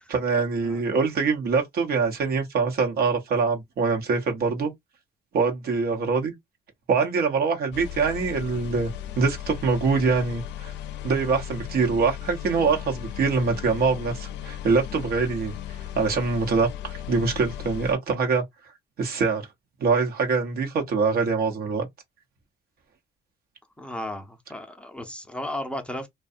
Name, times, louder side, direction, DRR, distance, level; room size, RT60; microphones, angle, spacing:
voice 1, 0.1-4.7 5.3-6.3 6.9-8.9 9.2-10.7 11.0-15.5 16.0-18.4 19.0-19.5 19.8-21.9, right 4 dB, 60° right, 0.9 m, -24 dB
sound 1, 7.7-17.9, left 10 dB, 80° left, 0.5 m, -36 dB
voice 2, 23.8-26.1, left 1 dB, 5° left, 0.6 m, -34 dB
2.6 x 2.2 x 2.5 m
cardioid pair, 95°, 18 cm